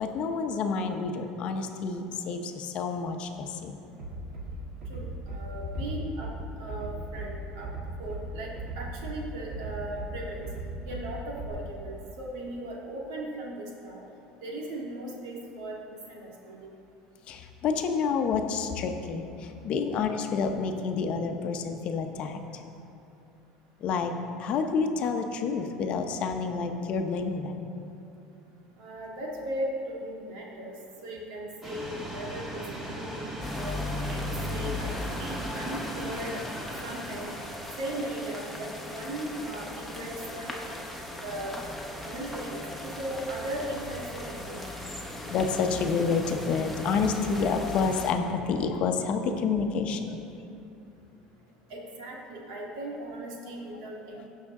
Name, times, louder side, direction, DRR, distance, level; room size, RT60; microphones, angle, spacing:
voice 1, 0.0-3.8 17.3-22.4 23.8-24.1 24.4-27.7 45.3-50.2, left 5 dB, 50° left, 6 dB, 0.8 m, -29 dB
Bass drum, 4.0-4.5 4.8-5.4 5.7-6.4 6.7-7.3 7.6-8.2 8.6-9.2 9.5-10.1 10.4-11.0 11.4-11.5, right 3 dB, 55° right, 2.5 m, -37 dB
voice 2, 4.9-6.3 6.6-7.7 8.0-10.5 10.9-14.0 14.4-16.7 28.8-30.7 31.0-36.4 36.8-37.3 37.8-40.5 41.2-41.5 42.0-44.6 51.7-54.3, right 1 dB, 90° right, -2 dB, 2.0 m, -38 dB
sound 1, 31.6-37.8, equal, 15° right, 2.0 m, -38 dB
sound 2, 33.4-48.1, left 1 dB, ahead, 1.1 m, -37 dB
16.0 x 5.7 x 3.7 m, 2.7 s
cardioid pair, 130°, 2 cm